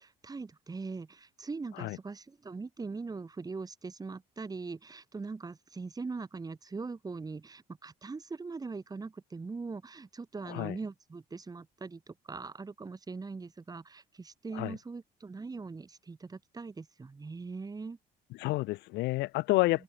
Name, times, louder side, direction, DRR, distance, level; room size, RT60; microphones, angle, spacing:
voice 1, 0.0-18.0 19.5-19.8, right 4 dB, 20° right, 4.2 m, -41 dB
voice 2, 18.4-19.8, left 20 dB, 90° left, 1.4 m, -29 dB
open air
cardioid pair, 110°, 17 cm